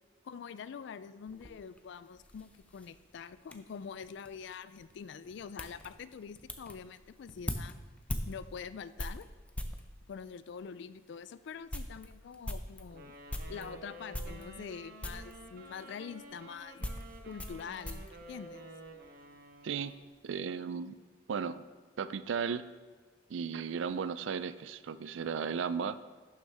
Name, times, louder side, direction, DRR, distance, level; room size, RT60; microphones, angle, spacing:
voice 1, 0.2-7.8 8.3-9.3 10.1-13.2 13.5-16.9 17.3-18.7, left 6 dB, 65° left, 15 dB, 0.3 m, -45 dB
sound 1, 1.2-9.9 10.6-10.7 11.1-11.2 11.5-13.7 14.1-14.8 15.0-15.4 16.2-19.1 19.4-20.0, left 1 dB, 5° left, 0.5 m, -42 dB
Wind instrument woodwind instrument, 12.9-20.1, right 2 dB, 50° right, 1.0 m, -51 dB
voice 2, 20.2-20.9 21.3-21.6 22.0-22.7 23.3-26.0, right 6 dB, 75° right, 15 dB, 0.4 m, -35 dB
11.5 x 6.4 x 3.4 m, 1.5 s
head